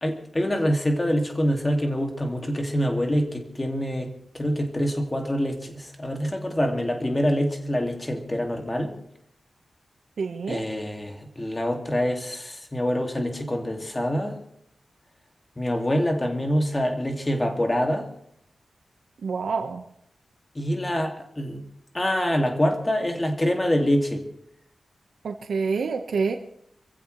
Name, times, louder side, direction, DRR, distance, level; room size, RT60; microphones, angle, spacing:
voice 1, 0.0-9.0 10.5-14.4 15.6-18.1 20.5-21.6 21.9-24.3, equal, 15° left, 3 dB, 2.4 m, -25 dB
voice 2, 10.2-10.6 19.2-19.8 25.2-26.4, right 5 dB, 80° right, 4 dB, 1.3 m, -27 dB
27.0 x 15.5 x 3.3 m, 0.72 s
wide cardioid pair, 175°, 0 cm